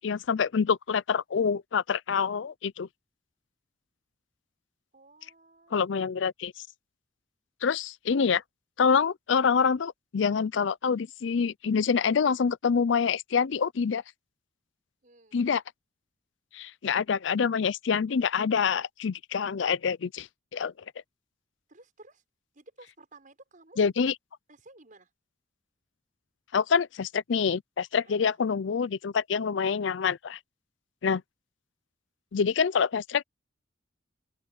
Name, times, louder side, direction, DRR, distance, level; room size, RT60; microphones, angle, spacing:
voice 1, 0.0-2.9 5.7-6.5 7.6-8.4 8.8-14.0 15.3-15.6 16.5-20.7 23.8-24.1 26.5-30.4 31.0-31.2 32.3-33.2, left 6 dB, 65° left, 0.5 m, -26 dB
voice 2, 4.9-5.8 15.0-15.4 21.7-22.2 22.5-23.8 24.5-25.1 28.0-28.4, right 2 dB, 45° right, 6.6 m, -54 dB
open air
head